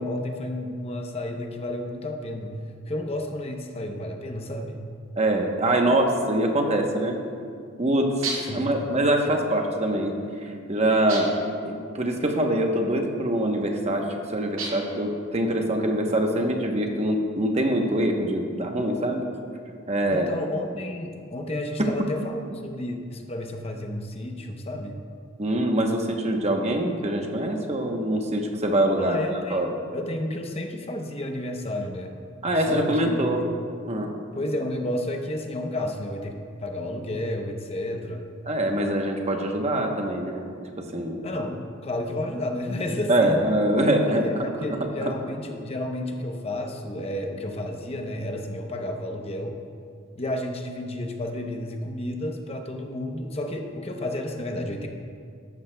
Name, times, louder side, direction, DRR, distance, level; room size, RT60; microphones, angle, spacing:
voice 1, 0.0-2.6 2.9-4.8 8.5-8.7 20.1-25.0 29.0-32.1 32.7-33.4 34.3-36.3 36.6-38.2 41.2-43.4 43.9-49.5 50.2-54.9, left 1 dB, 30° left, 3 dB, 0.7 m, -31 dB
voice 2, 5.2-7.2 7.8-11.3 11.6-19.2 19.9-20.3 25.4-29.7 32.4-33.4 33.9-34.1 38.5-40.4 40.8-41.2 43.1-44.4 45.0-45.1, right 1 dB, 30° right, 2 dB, 0.9 m, -24 dB
sound 1, 8.2-8.7 11.1-11.5 14.6-15.0, right 3 dB, 70° right, 2.1 m, -32 dB
13.5 x 12.0 x 2.2 m, 2.3 s
head